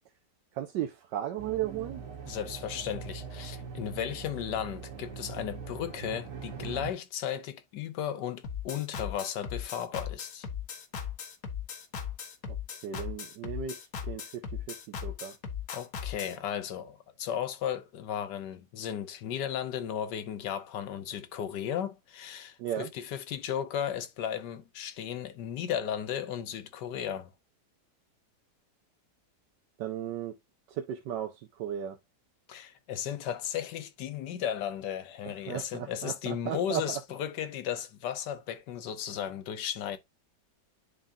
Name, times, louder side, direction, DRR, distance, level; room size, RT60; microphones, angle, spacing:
voice 1, 0.5-2.0 12.5-12.6 12.8-13.8 14.1-15.3 22.6-22.9 29.8-30.3 30.7-32.0 35.5-37.0, right 10 dB, 85° right, 1.3 m, -35 dB
sound 1, 1.4-6.9, right 6 dB, 50° right, 1.6 m, -42 dB
voice 2, 2.2-10.5 15.7-27.3 32.5-40.0, left 9 dB, 80° left, 1.5 m, -35 dB
sound 2, 8.4-16.4, left 7 dB, 60° left, 1.4 m, -38 dB
10.5 x 3.6 x 2.6 m
omnidirectional pair, 1.8 m